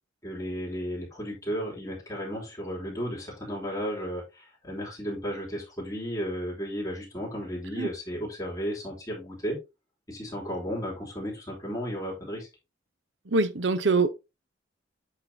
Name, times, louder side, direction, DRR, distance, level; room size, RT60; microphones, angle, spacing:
voice 1, 0.2-9.6 10.1-12.5, equal, 20° left, 3.1 m, -34 dB
voice 2, 13.3-14.1, right 3 dB, 75° right, 0.9 m, -23 dB
8.2 x 5.7 x 2.8 m
head